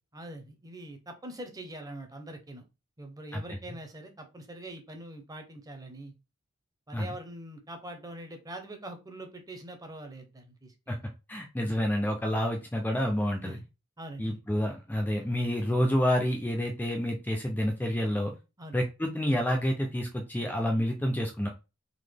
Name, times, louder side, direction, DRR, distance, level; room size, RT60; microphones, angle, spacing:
voice 1, 0.1-2.7 3.0-6.1 6.9-11.1 13.4-13.6 14.0-14.4 15.2-15.3 18.6-18.8, right 1 dB, 20° right, 5 dB, 0.8 m, -43 dB
voice 2, 11.3-13.6 14.2-18.3 18.7-21.5, equal, 10° left, 2 dB, 0.5 m, -28 dB
3.9 x 2.9 x 3.4 m, 0.27 s
head